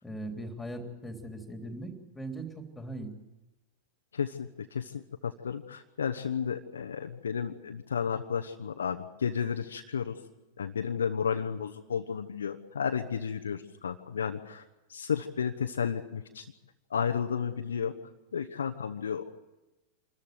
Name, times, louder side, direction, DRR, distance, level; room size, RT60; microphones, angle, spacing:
voice 1, 0.0-2.5 2.7-3.1, right 1 dB, 5° left, 4 dB, 3.5 m, -39 dB
voice 2, 4.1-10.2 10.6-14.6 14.9-16.4 16.9-17.9 18.3-19.5, left 7 dB, 70° left, 6 dB, 1.1 m, -32 dB
26.0 x 14.0 x 9.3 m, 1.0 s
figure-of-eight pair, 90°, 0 cm